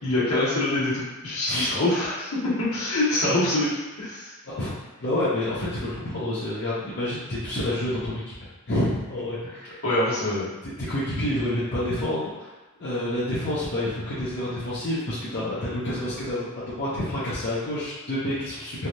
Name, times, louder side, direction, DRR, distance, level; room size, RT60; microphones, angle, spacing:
voice 1, 0.0-3.7 4.0-4.3 9.8-10.5, left 1 dB, 80° left, -8 dB, 1.2 m, -25 dB
voice 2, 5.0-8.3 8.7-9.8 10.6-12.5 12.8-18.9, left 1 dB, 50° left, -10 dB, 0.7 m, -28 dB
3.2 x 2.3 x 2.7 m, 1.1 s
head